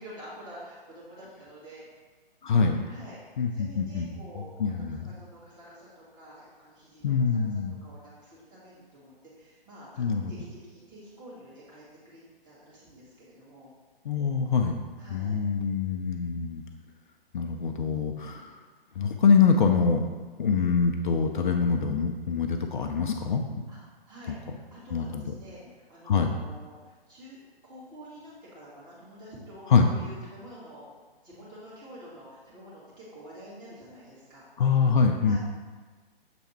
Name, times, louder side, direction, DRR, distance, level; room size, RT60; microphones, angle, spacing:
voice 1, 0.0-1.9 2.9-3.2 3.5-4.7 5.0-7.5 7.8-13.7 15.0-15.4 23.7-25.6 25.9-26.8 27.1-27.4 27.6-30.9 31.2-34.4 35.2-35.4, equal, 15° right, -8 dB, 1.9 m, -48 dB
voice 2, 2.4-2.8 3.4-4.1 4.6-5.1 7.0-7.7 10.0-10.3 14.0-14.8 15.1-16.6 17.3-18.6 19.0-20.0 20.4-23.4 24.9-25.3 26.1-26.3 29.7-29.9 34.6-35.4, left 5 dB, 55° left, 4 dB, 0.5 m, -24 dB
7.0 x 3.4 x 4.3 m, 1.4 s
figure-of-eight pair, 135°, 30 cm